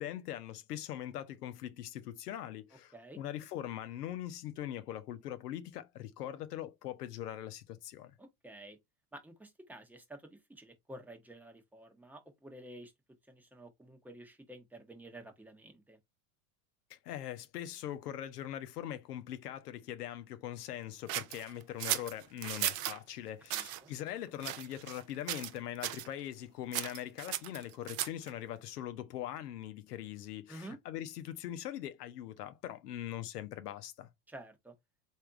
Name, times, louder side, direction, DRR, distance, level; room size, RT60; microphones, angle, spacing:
voice 1, 0.0-8.1 16.9-34.1, left 12 dB, 85° left, 0.8 m, -42 dB
voice 2, 8.2-8.8 9.1-12.9 13.3-16.0 23.5-23.9 30.5-30.8 34.3-34.7, right 1 dB, 5° right, 0.8 m, -51 dB
sound 1, 21.1-23.0 23.5-23.8 24.4-25.0 25.3-25.6 25.8-26.1 26.7-28.3, right 14 dB, 35° right, 0.4 m, -36 dB
3.4 x 2.8 x 3.4 m
hypercardioid pair, 110°, 46 cm